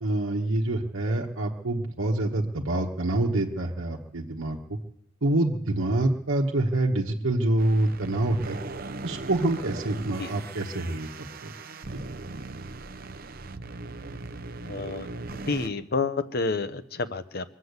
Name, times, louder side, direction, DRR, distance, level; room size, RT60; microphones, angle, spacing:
voice 1, 0.0-4.8 5.2-8.6 9.0-11.1 11.4-11.5 11.9-12.0, right 2 dB, 75° right, -2 dB, 1.2 m, -26 dB
sound 1, 7.6-15.7, right 3 dB, 45° right, 0.7 m, -39 dB
voice 2, 14.6-15.1 15.5-17.5, left 4 dB, 50° left, 12 dB, 0.8 m, -29 dB
23.0 x 7.6 x 8.1 m, 0.82 s
head